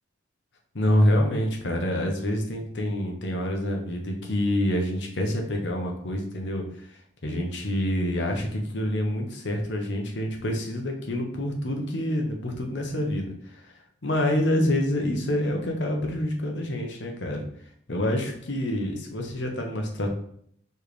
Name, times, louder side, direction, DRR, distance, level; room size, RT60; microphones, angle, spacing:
voice 1, 0.7-6.9 7.2-13.7 14.0-17.4 17.9-20.1, left 1 dB, 65° left, 2 dB, 0.9 m, -27 dB
4.4 x 3.4 x 3.2 m, 0.66 s
head